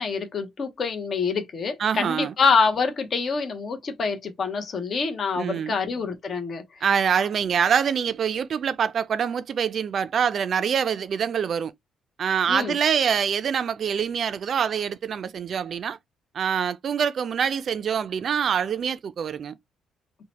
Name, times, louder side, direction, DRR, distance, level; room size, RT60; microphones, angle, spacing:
voice 1, 0.0-6.8 12.5-12.8, left 5 dB, 50° left, 0.7 m, -26 dB
voice 2, 1.8-2.3 5.4-5.8 6.8-11.7 12.2-16.0 16.3-19.6, right 7 dB, 55° right, 0.3 m, -25 dB
2.7 x 2.1 x 2.9 m
cardioid pair, 90°, 0 cm